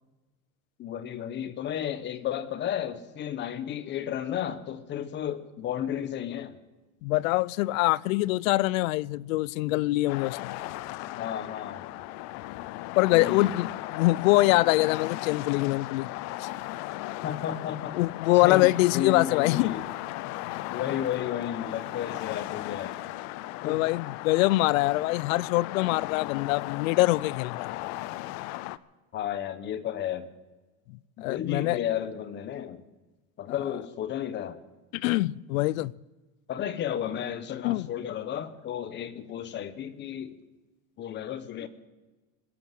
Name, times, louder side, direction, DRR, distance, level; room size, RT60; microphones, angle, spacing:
voice 1, 0.8-6.6 11.1-11.9 13.1-13.5 17.2-18.0 18.4-19.9 20.7-23.0 23.6-23.9 29.1-30.3 31.2-32.8 33.4-34.6 36.5-40.4 41.0-41.7, left 10 dB, 30° left, 0.9 m, -33 dB
voice 2, 7.0-10.6 12.9-16.1 16.4-16.5 17.9-19.7 23.6-27.7 31.2-31.8 34.9-35.9 37.6-37.9, left 19 dB, 90° left, 0.6 m, -24 dB
sound 1, 10.1-28.8, left 17 dB, 45° left, 0.5 m, -36 dB
21.0 x 8.8 x 7.6 m
supercardioid pair, 160°, 39 cm